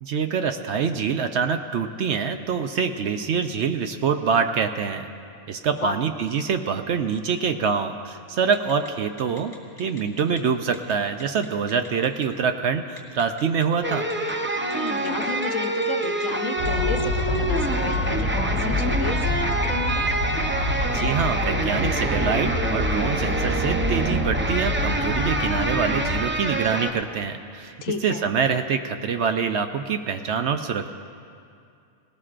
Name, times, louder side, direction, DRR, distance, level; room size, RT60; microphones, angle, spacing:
voice 1, 0.0-5.1 5.5-9.5 9.8-14.1 20.9-27.7 28.0-30.9, right 6 dB, 65° right, 7 dB, 0.8 m, -25 dB
Telephone, 8.5-8.9 9.2-10.4 10.7-10.9 11.2-12.3 13.0-13.6 14.1-14.3 14.7-16.3 16.6-16.7 17.0-18.0, left 2 dB, 25° left, 2.2 m, -44 dB
sound 1, 13.8-26.9, right 2 dB, 20° right, 0.3 m, -27 dB
voice 2, 14.6-20.1 27.8-28.3, left 5 dB, 70° left, 6 dB, 1.1 m, -32 dB
sound 2, 16.6-26.2, left 1 dB, 45° right, 2.1 m, -27 dB
19.0 x 18.5 x 2.5 m, 2.4 s
omnidirectional pair, 1.4 m